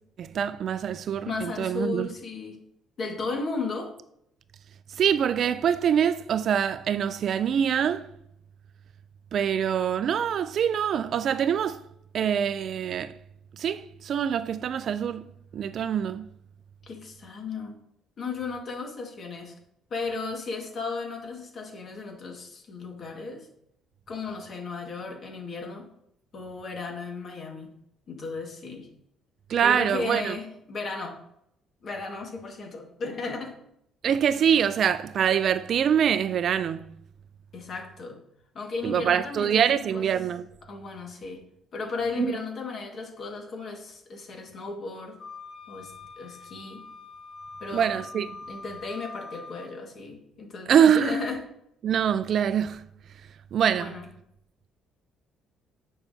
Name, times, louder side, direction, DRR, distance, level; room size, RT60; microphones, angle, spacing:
voice 1, 0.2-2.1 5.0-8.1 9.3-11.8 12.1-13.2 13.6-15.2 15.5-16.3 29.5-30.3 34.0-36.9 38.8-40.5 42.2-42.4 47.7-48.3 50.7-51.2 51.8-52.8 53.5-53.9, right 8 dB, 55° right, 0.3 m, -24 dB
voice 2, 1.2-2.6 3.0-3.9 16.8-17.7 18.2-19.5 19.9-23.5 24.1-25.9 26.3-27.7 28.1-28.9 29.6-31.1 31.8-33.6 37.5-38.2 38.5-40.0 40.7-41.4 41.7-45.2 45.7-46.9 47.6-48.0 48.5-51.4 53.8-54.1, left 3 dB, 45° left, 1.7 m, -35 dB
Wind instrument woodwind instrument, 45.2-49.7, left 3 dB, 75° left, 1.9 m, -43 dB
9.0 x 5.6 x 2.7 m
cardioid pair, 105°, 0 cm